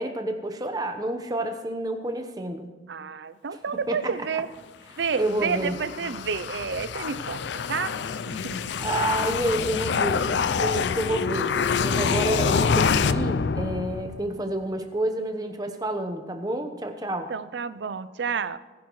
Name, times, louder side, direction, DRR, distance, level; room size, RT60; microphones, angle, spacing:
voice 1, 0.0-2.7 3.9-4.0 5.2-5.7 8.8-17.3, right 1 dB, 20° right, 6 dB, 1.0 m, -29 dB
voice 2, 2.9-4.5 5.0-7.9 8.3-8.6 17.3-18.6, right 5 dB, 85° right, 15 dB, 0.5 m, -30 dB
sound 1, 5.0-14.4, left 6 dB, 80° left, 0.4 m, -26 dB
20.0 x 10.5 x 3.1 m, 1.3 s
head